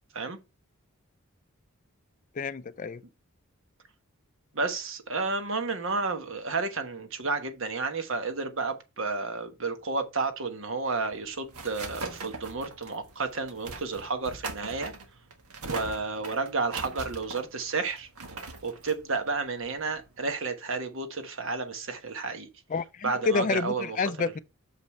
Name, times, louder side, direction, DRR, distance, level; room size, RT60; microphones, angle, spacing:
voice 1, 2.4-3.0 22.7-24.4, left 4 dB, 35° left, 0.4 m, -29 dB
voice 2, 4.5-14.9 15.7-18.1 18.6-22.5 23.0-24.0 24.2-24.3, right 4 dB, 60° right, 1.2 m, -31 dB
sound 1, 10.9-20.2, right 3 dB, 80° right, 1.5 m, -41 dB
6.8 x 5.3 x 4.4 m
head